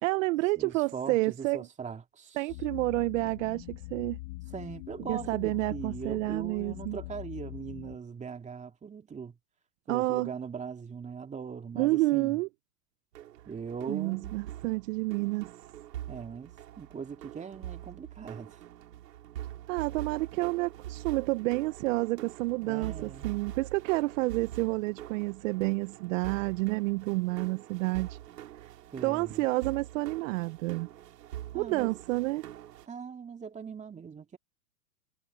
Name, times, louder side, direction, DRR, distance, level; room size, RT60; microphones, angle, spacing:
voice 1, 0.0-1.7 2.4-4.2 5.1-7.0 9.9-10.3 11.7-12.5 13.9-15.5 19.7-28.2 29.0-30.9 31.5-32.4, right 22 dB, 50° right, 1.0 m, -29 dB
voice 2, 0.6-2.4 4.5-9.4 9.9-12.4 13.5-14.4 16.1-18.6 22.6-23.3 28.9-29.4 31.5-31.9 32.9-34.4, right 6 dB, 15° right, 2.3 m, -40 dB
sound 1, 2.5-8.0, left 22 dB, 50° left, 2.3 m, -43 dB
sound 2, 13.1-32.9, right 12 dB, 70° right, 5.4 m, -44 dB
hypercardioid pair, 115°, 50 cm